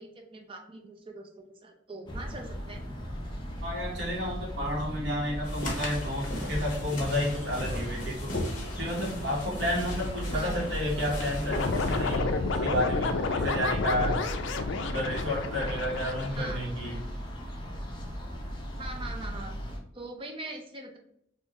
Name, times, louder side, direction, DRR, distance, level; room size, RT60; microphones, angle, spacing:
voice 1, 0.0-2.8 10.3-10.6 16.4-16.6 16.9-17.0 18.8-19.6 19.9-21.0, right 2 dB, 25° right, 4 dB, 0.5 m, -42 dB
sound 1, 2.1-19.8, equal, 25° left, 0.6 m, -37 dB
voice 2, 3.6-8.4 8.8-14.2 14.8-17.0, left 1 dB, 60° right, -2 dB, 1.3 m, -31 dB
sound 2, 5.4-12.2, left 1 dB, 45° left, 0.9 m, -37 dB
sound 3, 11.5-17.0, left 3 dB, 70° left, 0.4 m, -30 dB
3.7 x 2.5 x 3.0 m, 0.72 s
head